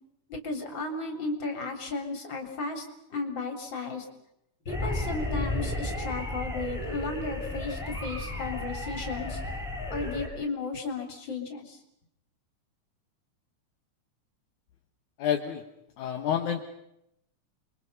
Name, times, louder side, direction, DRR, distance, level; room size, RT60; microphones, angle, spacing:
voice 1, 0.3-2.8 3.1-4.1 4.7-9.4 9.9-11.8, left 3 dB, 35° left, 4 dB, 4.0 m, -34 dB
sound 1, 4.7-10.3, left 1 dB, ahead, 5.5 m, -33 dB
voice 2, 15.2-15.6 16.0-16.6, left 9 dB, 70° left, 4 dB, 2.7 m, -28 dB
30.0 x 23.5 x 5.6 m, 0.79 s
omnidirectional pair, 3.7 m